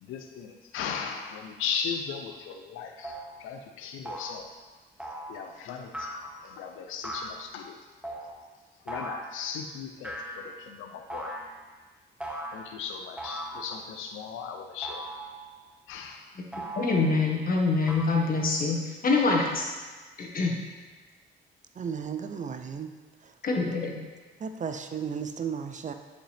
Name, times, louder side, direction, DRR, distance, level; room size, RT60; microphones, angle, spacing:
voice 1, 0.0-4.5 5.3-6.1 6.4-7.8 8.9-11.3 12.5-15.0 15.9-16.3, left 6 dB, 90° left, 5 dB, 0.6 m, -37 dB
sound 1, 2.3-2.4 3.0-3.3 4.0-4.4 5.0-5.4 5.9-6.4 7.0-7.4 8.0-8.3 8.9-9.4 10.0-10.7 11.1-11.6 12.2-12.7 13.2-13.9 14.8-15.5 16.5-17.2 17.9-18.0, right 1 dB, 5° right, 1.9 m, -38 dB
voice 2, 16.8-19.7 20.2-20.6 23.4-24.0, left 3 dB, 45° left, -1 dB, 1.7 m, -25 dB
voice 3, 21.8-22.9 24.4-25.9, right 6 dB, 40° right, 8 dB, 0.5 m, -34 dB
10.5 x 5.1 x 3.4 m, 1.3 s
cardioid pair, 90°, 20 cm